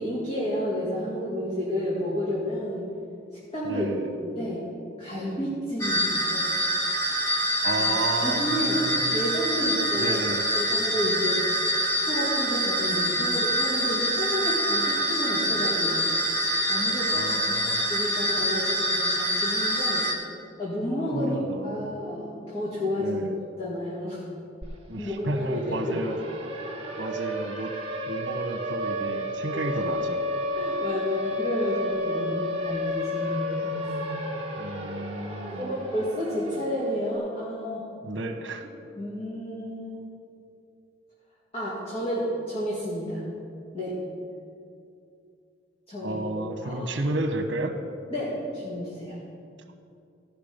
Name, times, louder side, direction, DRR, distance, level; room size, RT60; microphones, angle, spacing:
voice 1, 0.0-2.8 3.5-3.9 4.2-4.6 5.0-6.5 7.6-7.8 8.2-10.3 10.5-11.4 11.8-16.4 16.7-17.6 17.9-20.1 20.6-21.4 21.6-23.2 23.6-24.2 25.0-26.0 29.5-29.7 30.5-34.3 35.2-37.8 39.0-40.0 41.5-43.2 43.7-43.9 45.9-46.2 46.6-47.0 48.1-49.2, equal, 35° left, -8 dB, 2.2 m, -31 dB
voice 2, 3.6-4.1 7.6-9.2 10.0-10.4 17.1-18.1 21.1-22.0 23.0-23.4 24.9-26.2 27.0-27.7 28.1-30.2 34.6-35.8 38.0-38.6 46.0-47.7, right 2 dB, 75° right, 5 dB, 1.1 m, -32 dB
sound 1, 5.8-20.1, equal, 15° left, 1.3 m, -25 dB
Siren, 24.6-24.7 25.0-37.1, left 1 dB, 30° right, 1.6 m, -32 dB
15.5 x 5.9 x 5.3 m, 2.5 s
head